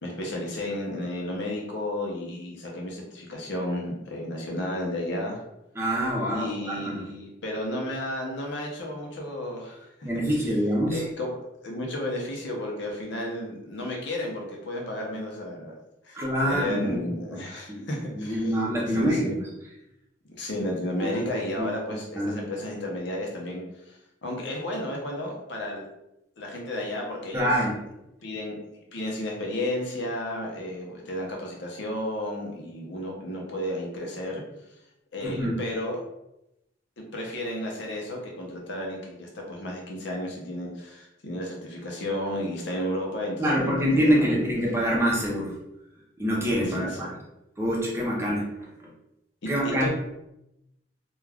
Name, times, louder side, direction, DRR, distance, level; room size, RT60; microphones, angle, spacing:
voice 1, 0.0-5.4 6.3-10.4 10.9-15.7 16.0-18.5 18.9-19.4 20.2-25.8 26.4-27.5 28.2-28.6 28.9-34.4 35.1-36.0 37.0-44.5 46.7-47.1 49.4-49.5 49.8-49.9, left 1 dB, 70° left, 0 dB, 0.7 m, -33 dB
voice 2, 5.8-7.0 10.0-11.0 16.1-17.0 17.3-17.4 17.7-17.9 18.1-19.3 21.0-21.2 21.6-21.7 22.2-22.4 27.3-27.8 35.2-35.6 43.4-45.5 46.2-47.1 47.6-48.5 49.5-49.9, equal, 15° right, -4 dB, 0.6 m, -25 dB
2.3 x 2.3 x 3.3 m, 0.87 s
head